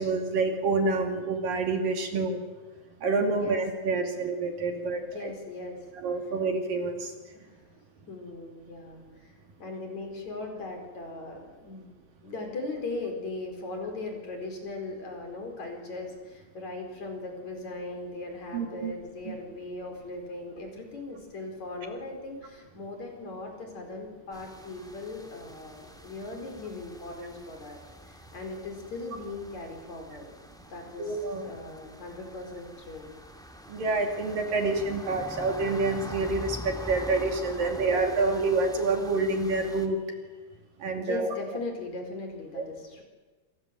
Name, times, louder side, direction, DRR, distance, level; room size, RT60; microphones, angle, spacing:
voice 1, 0.0-2.4 3.0-5.3 6.0-7.1 18.5-18.9 19.3-19.4 31.0-31.5 33.7-40.0 40.8-41.3 42.6-42.7, right 3 dB, 55° right, 4 dB, 4.2 m, -27 dB
voice 2, 3.2-3.6 4.1-4.2 4.7-5.9 7.3-7.6 8.1-11.9 12.2-27.8 28.1-31.2 31.4-33.1 41.0-43.0, left 2 dB, 45° left, 3 dB, 5.8 m, -39 dB
sound 1, 24.3-39.9, equal, ahead, 0.8 m, -45 dB
27.5 x 26.5 x 7.8 m, 1.3 s
omnidirectional pair, 4.9 m